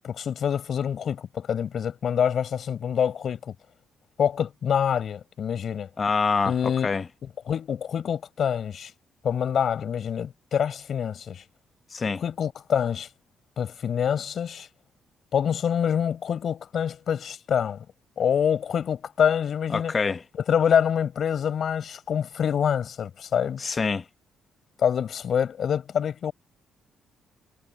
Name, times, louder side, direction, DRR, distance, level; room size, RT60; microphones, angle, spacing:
voice 1, 0.0-3.5 4.2-5.9 6.5-6.9 7.5-8.9 9.2-11.4 12.2-13.1 13.6-14.7 15.3-17.9 18.2-19.9 20.5-23.7 24.8-26.3, left 8 dB, 60° left, 7.4 m, -26 dB
voice 2, 6.0-7.1 11.9-12.2 19.7-20.2 23.6-24.0, left 4 dB, 40° left, 1.4 m, -26 dB
cardioid pair, 75°, 0 cm